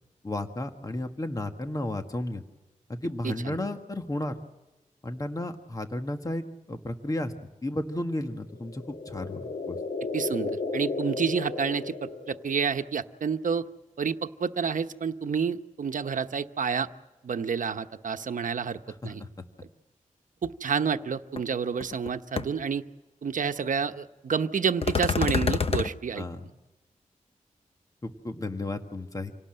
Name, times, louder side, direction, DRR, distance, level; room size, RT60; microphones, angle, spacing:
voice 1, 0.2-2.4 2.9-4.3 5.0-7.3 7.6-9.8 19.0-19.3 26.2-26.4 28.0-29.3, left 1 dB, 25° left, 6 dB, 1.6 m, -33 dB
voice 2, 3.2-3.6 10.1-13.7 14.0-16.9 17.2-19.2 20.4-22.8 23.2-26.2, right 6 dB, 75° right, 9 dB, 1.0 m, -29 dB
sound 1, 8.5-12.7, left 3 dB, 90° left, 1.7 m, -34 dB
sound 2, 21.4-21.5 21.8-22.1 22.4-22.5 24.8-25.9, left 5 dB, 45° left, 1.0 m, -26 dB
27.0 x 18.0 x 7.7 m, 1.1 s
wide cardioid pair, 115°, 14 cm